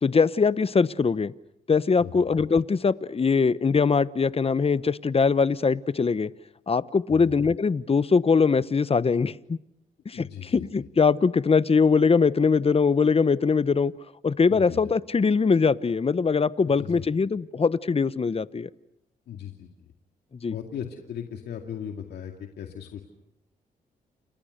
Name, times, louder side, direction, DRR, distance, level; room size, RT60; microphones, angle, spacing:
voice 1, 0.0-1.3 1.7-6.3 6.7-9.6 10.1-13.9 14.2-18.7 20.4-20.5, left 5 dB, 35° left, 17 dB, 1.0 m, -22 dB
voice 2, 10.1-10.9 14.5-14.9 16.7-17.0 19.3-19.9 20.5-23.0, left 8 dB, 80° left, 4 dB, 2.3 m, -38 dB
30.0 x 28.0 x 6.7 m, 0.86 s
supercardioid pair, 55°, 17 cm